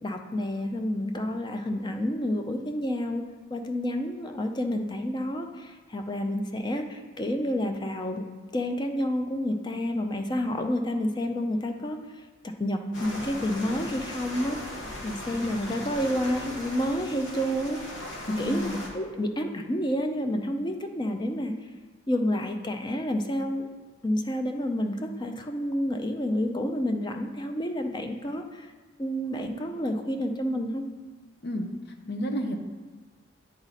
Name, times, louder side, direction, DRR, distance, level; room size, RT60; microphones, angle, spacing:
voice 1, 0.0-3.2 3.5-8.2 8.5-12.0 12.4-14.6 15.0-17.8 18.4-21.5 22.1-23.7 24.0-28.7 29.0-30.8, equal, 25° left, 5 dB, 0.5 m, -29 dB
sound 1, 12.9-18.9, left 1 dB, 75° left, 1.2 m, -38 dB
voice 2, 18.3-18.8 31.4-31.7 32.1-32.6, equal, 60° left, 4 dB, 0.7 m, -30 dB
9.3 x 3.9 x 4.1 m, 1.3 s
head